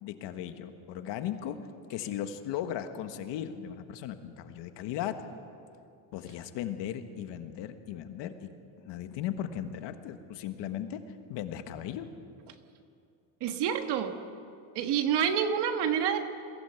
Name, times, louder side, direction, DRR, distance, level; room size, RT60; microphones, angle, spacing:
voice 1, 0.0-1.6 1.9-5.2 6.1-8.5 8.8-11.0 11.3-12.1, left 10 dB, 60° left, 8 dB, 1.5 m, -37 dB
voice 2, 13.4-14.2 14.7-16.3, right 8 dB, 55° right, 7 dB, 1.6 m, -28 dB
22.5 x 15.5 x 8.1 m, 2.5 s
cardioid pair, 150°, 48 cm